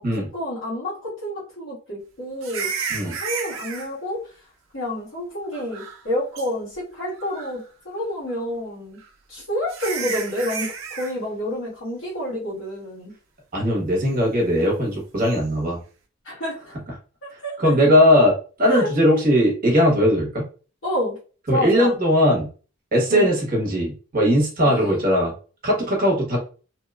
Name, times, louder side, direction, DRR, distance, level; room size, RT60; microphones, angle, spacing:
voice 1, 0.3-2.7 3.0-4.3 4.7-9.0 9.3-13.1 16.2-16.7 17.4-17.6 18.7-18.9 20.8-21.2 21.5-22.0 23.1-23.3 24.6-24.9, equal, 70° left, -5 dB, 1.2 m, -29 dB
sound 1, 2.4-3.9 5.5-6.1 6.4-6.5 7.1-7.6 9.0-9.1 9.7-11.1 15.2-15.4, right 6 dB, 80° right, 0.5 m, -32 dB
voice 2, 13.5-15.8 17.6-20.5 21.5-22.5 22.9-25.3 25.6-26.4, equal, 45° right, -1 dB, 0.9 m, -19 dB
2.7 x 2.2 x 2.3 m, 0.37 s
head